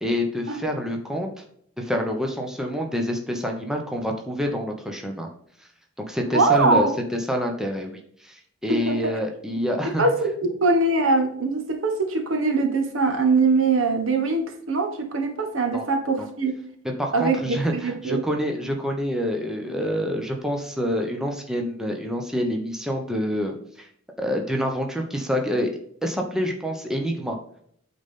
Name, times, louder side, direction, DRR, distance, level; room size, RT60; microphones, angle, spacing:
voice 1, 0.0-1.3 1.8-5.3 6.0-6.9 7.3-7.9 8.2-10.0 15.7-15.8 16.2-16.3 17.0-23.9 24.2-25.7 26.0-27.4, equal, 5° right, 2 dB, 0.9 m, -27 dB
voice 2, 6.3-6.9 8.7-9.0 10.0-16.6 17.1-18.2, right 3 dB, 80° right, 5 dB, 1.5 m, -22 dB
8.6 x 4.1 x 3.7 m, 0.66 s
head